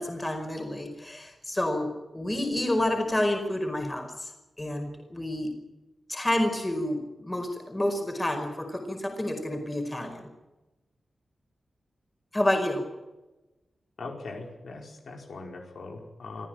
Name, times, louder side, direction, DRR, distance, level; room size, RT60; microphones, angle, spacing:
voice 1, 0.0-4.3 4.6-5.5 6.1-10.3 12.3-12.9, left 1 dB, 15° left, 4 dB, 5.0 m, -29 dB
voice 2, 14.0-16.5, left 3 dB, 65° left, 2 dB, 4.8 m, -40 dB
25.5 x 15.0 x 9.1 m, 1.1 s
wide cardioid pair, 130°, 0 cm